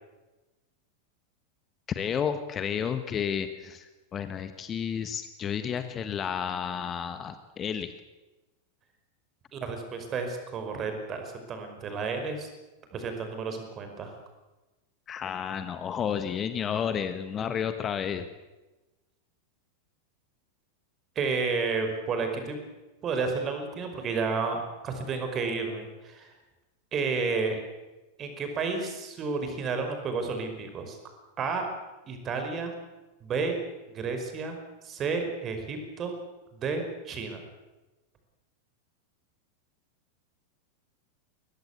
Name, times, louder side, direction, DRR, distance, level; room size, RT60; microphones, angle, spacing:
voice 1, 1.9-7.9 15.1-18.2, left 8 dB, 25° left, 10 dB, 1.4 m, -31 dB
voice 2, 9.5-12.5 12.9-14.1 21.2-22.6 23.0-26.3 26.9-27.6 28.2-31.0 31.4-31.7 32.1-32.7 33.2-33.6 33.9-34.6 34.8-36.1 36.5-37.4, right 4 dB, 30° right, 6 dB, 5.3 m, -31 dB
22.0 x 20.0 x 8.3 m, 1.1 s
figure-of-eight pair, 90°, 0 cm